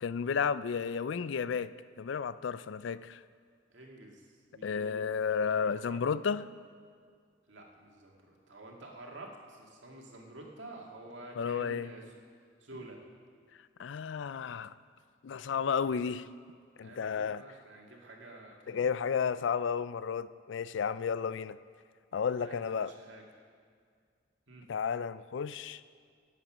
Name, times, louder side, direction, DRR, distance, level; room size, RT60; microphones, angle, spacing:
voice 1, 0.0-3.2 4.6-6.5 11.4-11.9 13.8-14.7 15.2-16.3 16.8-17.4 18.7-21.6 22.1-22.9 24.7-25.8, left 6 dB, 70° left, 16 dB, 0.4 m, -32 dB
voice 2, 3.7-5.2 5.6-6.0 7.5-12.2 12.6-13.0 15.9-16.1 16.8-18.8 22.3-23.4 24.5-24.7, right 2 dB, 75° right, 0 dB, 2.0 m, -50 dB
17.5 x 8.1 x 6.1 m, 2.1 s
head